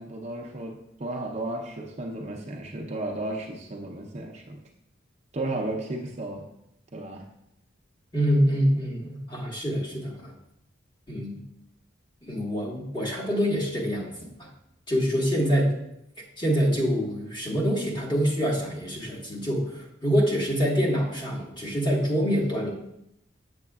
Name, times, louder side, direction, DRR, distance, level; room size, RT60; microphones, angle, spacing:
voice 1, 0.0-4.6 5.3-6.5 6.9-7.3, right 2 dB, 35° right, 0 dB, 0.6 m, -34 dB
voice 2, 8.1-10.3 11.1-11.4 12.2-14.1 14.4-14.5 14.9-15.7 16.4-22.7, equal, 25° left, -3 dB, 1.5 m, -25 dB
7.6 x 7.1 x 2.4 m, 0.81 s
head